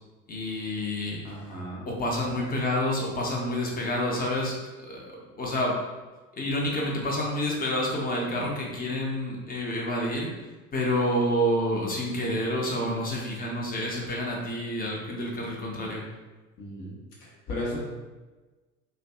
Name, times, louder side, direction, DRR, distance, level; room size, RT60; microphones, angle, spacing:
voice 1, 0.3-1.4 1.9-4.6 4.9-5.8 6.3-10.3 10.7-16.0, left 1 dB, 20° left, -2 dB, 0.6 m, -28 dB
voice 2, 1.2-1.9 16.6-17.8, left 1 dB, 55° left, -4 dB, 1.0 m, -36 dB
2.5 x 2.2 x 2.3 m, 1.2 s
hypercardioid pair, 70°, 40 cm